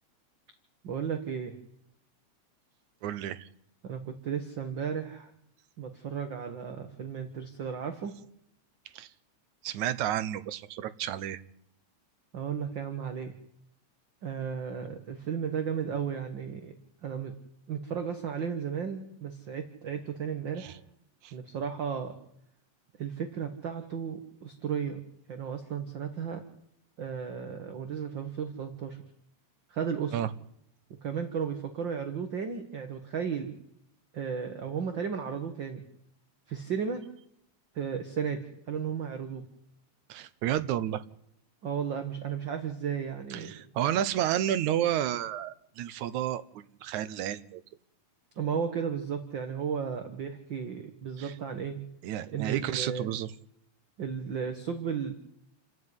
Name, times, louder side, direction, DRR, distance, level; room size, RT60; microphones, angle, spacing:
voice 1, 0.8-1.6 3.8-5.3 5.8-8.1 12.3-13.3 14.2-16.7 17.0-17.3 17.7-20.8 21.3-22.2 23.0-25.0 25.3-26.4 27.0-29.0 29.7-30.1 31.0-33.5 34.1-35.8 36.5-37.0 37.8-38.4 38.7-39.5 41.6-43.5 48.4-51.8 52.3-53.1 54.0-55.1, right 7 dB, 45° right, 7 dB, 2.0 m, -34 dB
voice 2, 3.0-3.5 8.9-9.1 9.6-11.4 20.6-20.8 21.2-21.3 30.1-30.3 40.1-41.0 43.3-47.6 51.2-51.3 52.0-53.3, right 11 dB, 80° right, 15 dB, 2.4 m, -31 dB
29.5 x 11.0 x 9.7 m, 0.75 s
omnidirectional pair, 3.3 m